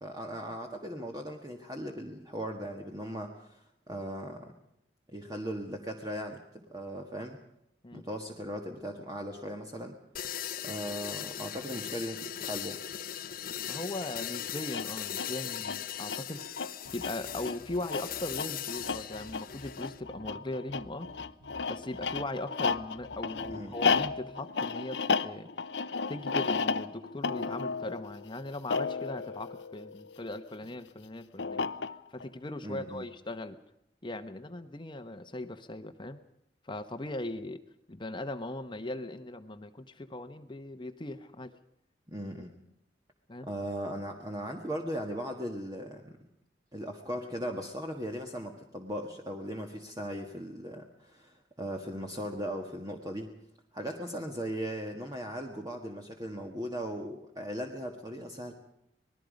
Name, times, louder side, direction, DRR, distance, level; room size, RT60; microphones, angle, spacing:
voice 1, 0.0-4.5 5.1-7.4 7.9-10.0 10.6-12.8 23.5-23.7 32.6-33.0 42.1-42.5 43.4-46.2 46.7-53.3 53.7-58.5, equal, 20° right, 2 dB, 1.7 m, -38 dB
sound 1, 10.1-20.0, left 10 dB, 55° left, 0.9 m, -39 dB
voice 2, 13.7-16.4 16.9-21.1 21.7-25.5 26.1-31.6 32.1-33.6 34.0-36.2 36.6-37.6 37.9-41.5 43.3-43.5, left 2 dB, 30° left, 9 dB, 1.0 m, -39 dB
sound 2, 14.6-30.4 31.4-32.2, left 5 dB, 85° left, 0.8 m, -33 dB
sound 3, 16.8-24.4, equal, 60° right, 5.8 m, -54 dB
26.5 x 19.5 x 5.2 m, 0.79 s
head